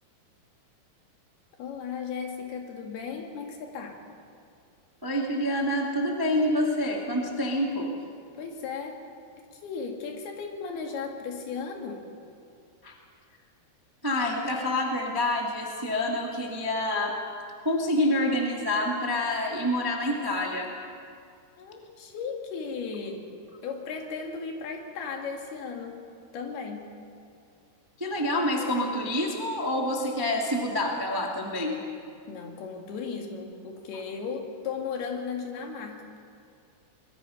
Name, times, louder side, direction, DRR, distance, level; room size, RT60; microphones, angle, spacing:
voice 1, 1.6-4.0 8.3-9.0 9.5-12.0 21.6-23.3 23.6-26.0 26.3-26.9 32.3-36.1, left 5 dB, 65° left, 2 dB, 3.9 m, -36 dB
voice 2, 5.0-7.9 12.8-12.9 14.0-17.1 17.6-20.7 28.0-31.8, left 1 dB, 25° right, 0 dB, 0.4 m, -27 dB
24.0 x 21.5 x 5.8 m, 2.4 s
omnidirectional pair, 4.9 m